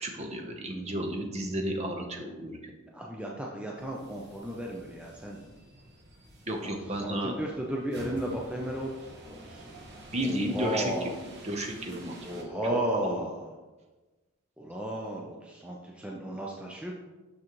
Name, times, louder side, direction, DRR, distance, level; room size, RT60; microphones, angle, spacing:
voice 1, 0.0-2.7 6.5-7.4 10.1-11.1 11.4-13.2, right 1 dB, 30° right, 3 dB, 0.7 m, -33 dB
voice 2, 2.9-5.4 7.0-9.7 10.2-11.1 12.2-13.4 14.6-16.9, right 1 dB, 5° right, -2 dB, 0.4 m, -34 dB
sound 1, 3.7-12.4, right 1 dB, 50° right, 1.1 m, -49 dB
6.3 x 6.1 x 3.0 m, 1.2 s
head